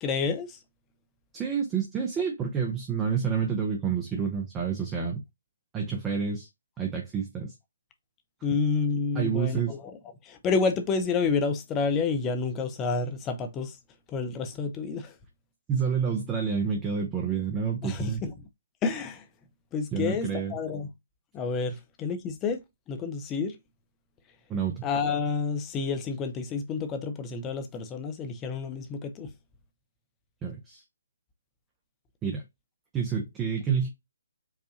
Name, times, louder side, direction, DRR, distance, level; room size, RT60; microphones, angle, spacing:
voice 1, 0.0-0.6 8.4-9.9 10.2-13.7 14.1-15.1 17.8-18.3 18.8-19.2 19.7-20.9 21.3-22.6 22.9-23.5 24.8-29.3, left 4 dB, 20° left, 0.6 m, -29 dB
voice 2, 1.3-5.2 5.7-6.5 6.8-7.5 9.1-9.8 15.7-18.2 19.9-20.6 24.5-24.9 30.4-30.8 32.2-32.4 32.9-33.9, right 6 dB, 15° right, 0.7 m, -29 dB
4.8 x 2.5 x 2.7 m
figure-of-eight pair, 140°, 0 cm